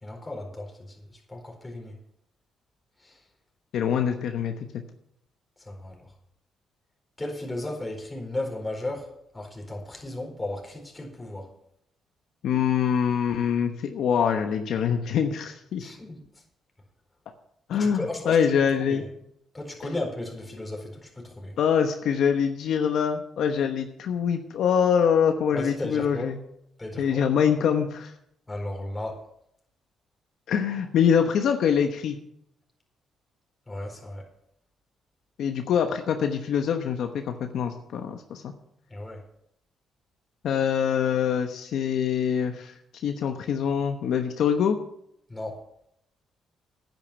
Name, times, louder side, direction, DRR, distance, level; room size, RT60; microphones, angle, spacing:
voice 1, 0.0-1.9 3.0-3.2 5.6-6.0 7.2-9.1 9.3-11.5 15.8-16.2 17.8-18.4 18.9-19.1 19.5-21.6 25.5-26.3 26.8-27.3 28.5-29.2 33.7-34.3 38.9-39.2 45.3-45.6, left 1 dB, 15° left, 1 dB, 4.4 m, -35 dB
voice 2, 3.7-4.8 12.4-15.9 17.7-19.0 21.6-26.4 27.0-28.1 30.5-32.2 35.4-38.5 40.4-42.7 43.0-44.8, left 7 dB, 75° left, 5 dB, 1.1 m, -24 dB
10.0 x 9.4 x 6.8 m, 0.74 s
cardioid pair, 90°, 0 cm